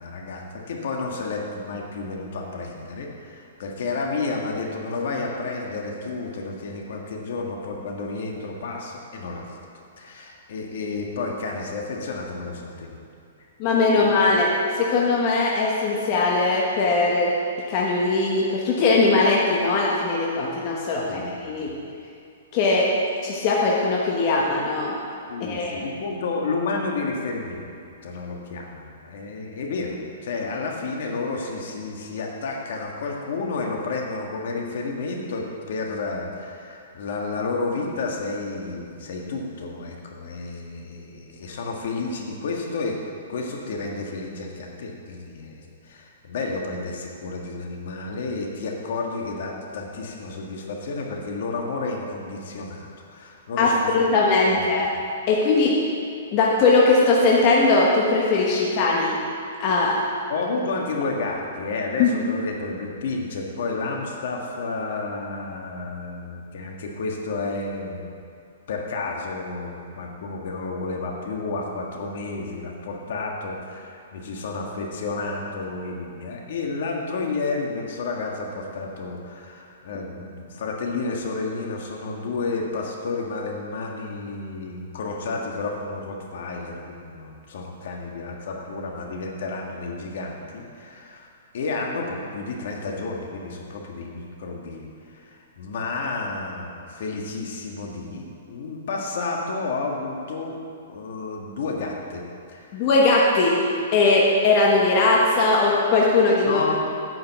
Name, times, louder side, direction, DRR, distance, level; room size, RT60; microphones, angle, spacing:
voice 1, 0.0-9.6 10.0-13.0 14.0-14.1 21.0-21.8 25.3-27.6 28.0-43.0 43.3-54.1 54.5-54.7 60.3-68.1 68.7-91.3 91.5-100.6 100.9-102.2 102.5-102.9 106.5-106.7, left 3 dB, 60° left, 0 dB, 1.6 m, -31 dB
voice 2, 13.6-17.3 17.7-21.7 22.5-22.9 23.2-24.9 25.5-25.8 53.6-54.9 55.3-55.7 56.3-59.2 59.6-60.0 62.0-62.1 102.7-106.6, left 3 dB, 35° left, -3 dB, 1.2 m, -20 dB
9.1 x 5.6 x 8.0 m, 2.4 s
hypercardioid pair, 165°, 0 cm